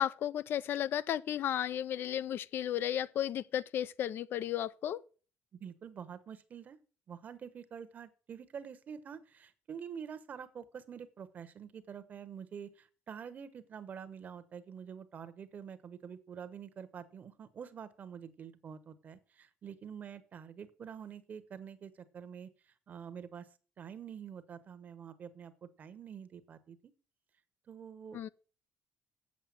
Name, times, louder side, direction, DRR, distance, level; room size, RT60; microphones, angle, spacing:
voice 1, 0.0-5.0 28.1-28.3, left 10 dB, 55° left, 0.4 m, -34 dB
voice 2, 5.5-6.8 7.1-22.5 22.9-23.5 23.8-26.9 27.7-28.3, right 7 dB, 40° right, 1.0 m, -47 dB
7.9 x 7.5 x 7.5 m
cardioid pair, 150°, 4 cm